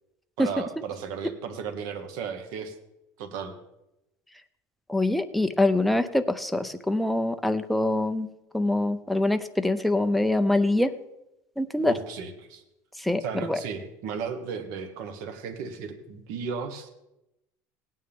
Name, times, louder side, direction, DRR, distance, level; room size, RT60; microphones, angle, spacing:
voice 1, 0.4-2.7 3.2-3.6 11.8-12.6 13.2-16.9, right 6 dB, 65° right, 6 dB, 1.5 m, -35 dB
voice 2, 4.9-8.3 8.5-10.9 11.6-11.9 13.0-13.6, left 2 dB, ahead, 8 dB, 0.5 m, -24 dB
17.0 x 9.4 x 3.6 m, 0.89 s
cardioid pair, 160°, 7 cm